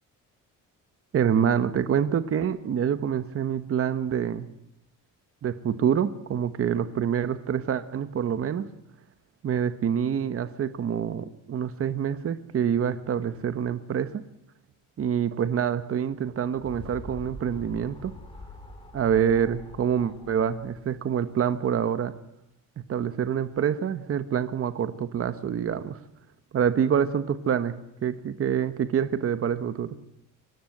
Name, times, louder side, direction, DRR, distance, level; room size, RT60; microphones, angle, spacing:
voice 1, 1.1-4.5 5.4-8.6 9.4-14.2 15.0-18.1 18.9-22.1 22.9-26.0 26.5-27.7 28.0-30.0, right 8 dB, 40° right, 12 dB, 1.2 m, -26 dB
sound 1, 16.1-21.7, left 2 dB, 15° left, 4.8 m, -44 dB
24.5 x 18.5 x 7.9 m, 0.81 s
cardioid pair, 160°, 34 cm